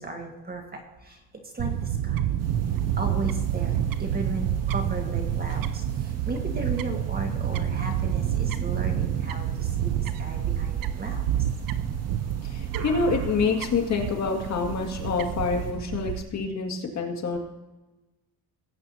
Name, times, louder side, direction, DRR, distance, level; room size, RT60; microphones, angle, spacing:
voice 1, 0.0-11.3, right 2 dB, 25° right, 3 dB, 1.7 m, -36 dB
Fowl / Bird, 1.6-16.2, right 10 dB, 55° right, 0.6 m, -28 dB
sound 1, 2.4-15.7, right 3 dB, 40° right, 2.1 m, -43 dB
voice 2, 12.4-17.4, left 4 dB, 40° left, 2 dB, 2.1 m, -27 dB
18.5 x 8.6 x 2.8 m, 1.1 s
cardioid pair, 125°, 40 cm